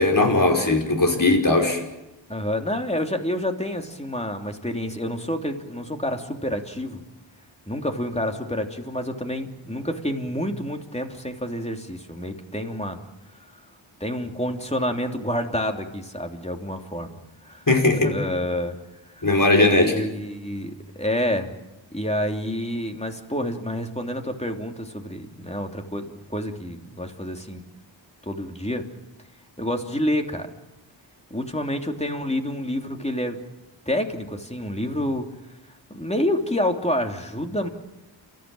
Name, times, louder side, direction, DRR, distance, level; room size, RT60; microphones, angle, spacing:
voice 1, 0.0-1.8 17.7-18.1 19.2-19.9, left 2 dB, 45° left, 2 dB, 5.1 m, -18 dB
voice 2, 2.3-7.0 7.7-13.0 14.0-17.2 17.4-17.6 17.9-18.8 19.2-19.3 19.8-21.5 21.9-27.6 28.2-28.8 29.6-30.5 31.3-33.4 33.9-35.2 35.9-37.7, left 1 dB, 15° left, 4 dB, 3.0 m, -28 dB
29.0 x 14.5 x 9.0 m, 0.98 s
wide cardioid pair, 55°, 45 cm